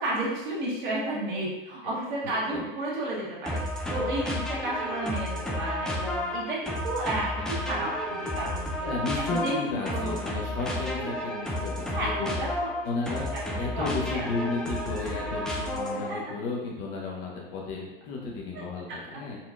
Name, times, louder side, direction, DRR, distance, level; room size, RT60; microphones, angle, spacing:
voice 1, 0.0-10.2 11.9-12.7 13.3-14.3 16.1-16.2 18.5-18.6, right 1 dB, 55° right, -5 dB, 1.4 m, -32 dB
sound 1, 3.5-16.2, left 1 dB, ahead, 0.4 m, -32 dB
voice 2, 8.8-12.3 12.8-13.3 13.6-19.4, left 3 dB, 40° left, -2 dB, 1.0 m, -33 dB
4.2 x 2.9 x 2.5 m, 1.0 s
figure-of-eight pair, 100°, 29 cm